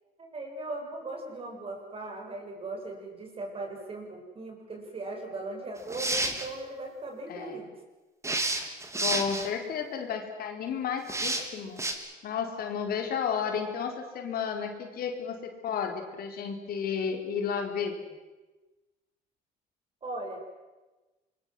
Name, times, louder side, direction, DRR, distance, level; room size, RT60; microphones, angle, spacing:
voice 1, 0.2-7.7 20.0-20.4, right 2 dB, 35° right, 2 dB, 7.8 m, -38 dB
sound 1, 5.8-6.5 8.2-9.5 11.1-11.4 11.8-11.9, right 2 dB, 15° right, 3.6 m, -29 dB
voice 2, 9.0-11.8 12.2-17.9, left 7 dB, 65° left, 4 dB, 4.4 m, -32 dB
26.0 x 23.0 x 7.9 m, 1.2 s
cardioid pair, 110°, 17 cm